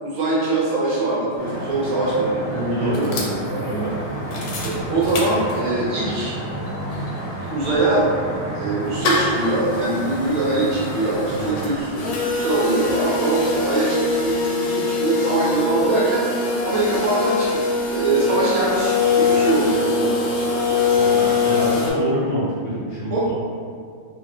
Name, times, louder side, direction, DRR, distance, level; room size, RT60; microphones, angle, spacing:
voice 1, 0.0-3.1 3.5-3.9 4.6-6.4 7.5-8.0 8.5-20.5 23.1-23.3, right 2 dB, 70° right, -7 dB, 1.3 m, -23 dB
sound 1, 1.4-11.8, right 1 dB, 25° right, 0.7 m, -31 dB
voice 2, 2.5-3.9 11.3-11.6 20.9-23.3, right 1 dB, 55° left, -10 dB, 1.3 m, -26 dB
sound 2, 2.9-5.9 6.3-6.4 6.6-21.9, left 4 dB, 90° left, 1.5 m, -24 dB
3.5 x 2.4 x 2.3 m, 2.2 s
omnidirectional pair, 2.3 m